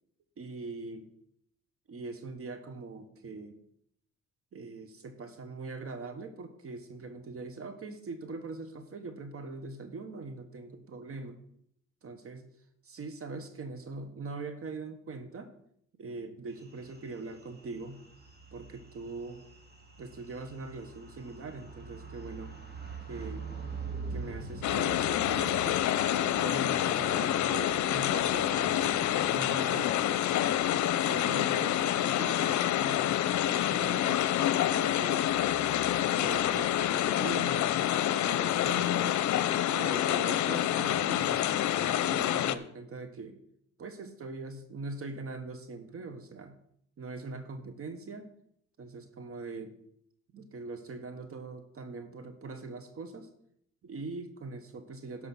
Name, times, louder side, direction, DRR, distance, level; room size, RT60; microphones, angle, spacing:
voice 1, 0.4-1.1 1.9-3.6 4.5-11.4 12.0-12.4 12.8-15.5 16.0-18.0 18.5-19.4 20.0-22.5 23.1-23.5 24.1-25.8 26.2-29.0 29.3-30.2 30.7-33.2 33.5-34.2 34.8-35.3 36.1-39.2 39.6-41.4 41.8-43.4 43.8-46.6 47.0-48.3 48.8-49.8 50.3-53.3 53.8-55.3, right 3 dB, 50° right, 8 dB, 1.4 m, -42 dB
sound 1, 16.6-31.2, right 3 dB, 35° right, 2.5 m, -45 dB
sound 2, 24.6-42.6, left 12 dB, 70° left, 0.7 m, -27 dB
12.0 x 5.5 x 6.1 m, 0.70 s
cardioid pair, 90°, 30 cm